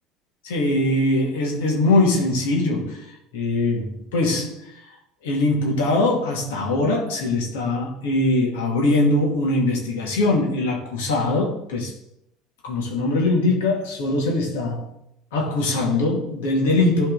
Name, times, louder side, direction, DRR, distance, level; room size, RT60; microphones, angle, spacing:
voice 1, 0.4-3.1 3.3-4.6 5.2-11.9 12.6-14.9 15.3-17.1, left 2 dB, 85° left, 2.3 m, -22 dB
11.5 x 4.4 x 4.1 m
supercardioid pair, 90°, 0 cm